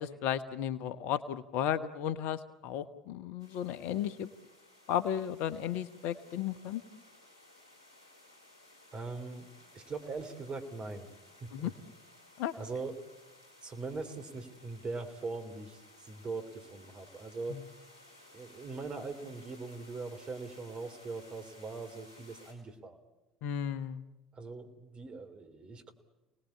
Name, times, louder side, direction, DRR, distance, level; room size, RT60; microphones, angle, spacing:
voice 1, 0.0-4.3 4.9-6.8 11.5-11.7 12.4-12.5 17.5-17.7 23.4-24.0, left 10 dB, 60° left, 12 dB, 1.1 m, -34 dB
sound 1, 3.4-22.5, left 1 dB, 85° right, 5.1 m, -58 dB
voice 2, 8.9-9.5 9.7-11.1 11.4-11.7 12.6-12.9 13.6-17.6 18.3-23.0 24.3-25.9, right 3 dB, 35° right, 7 dB, 3.4 m, -41 dB
28.5 x 19.5 x 8.6 m, 1.0 s
figure-of-eight pair, 65°, 3 cm